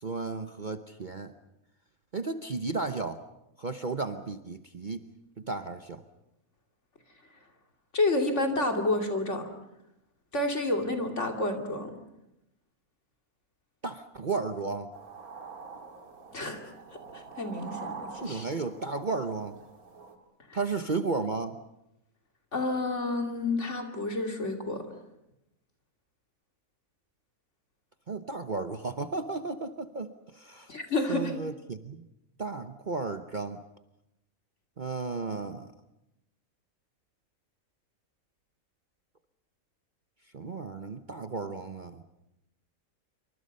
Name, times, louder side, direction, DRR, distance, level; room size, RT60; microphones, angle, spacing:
voice 1, 0.0-1.3 2.1-3.2 3.6-5.1 5.4-6.0 13.8-14.9 18.2-19.6 20.5-21.6 28.1-30.7 31.1-32.1 32.4-33.6 34.8-35.7 40.3-42.0, right 3 dB, 40° right, 8 dB, 0.9 m, -34 dB
voice 2, 7.9-9.5 10.3-11.9 16.3-16.6 17.1-18.5 20.5-20.6 22.5-24.8 30.7-31.4, left 2 dB, 50° left, 3 dB, 3.1 m, -29 dB
sound 1, 14.9-20.2, right 5 dB, 75° right, 2.7 m, -45 dB
27.5 x 25.0 x 5.5 m, 0.87 s
omnidirectional pair, 1.5 m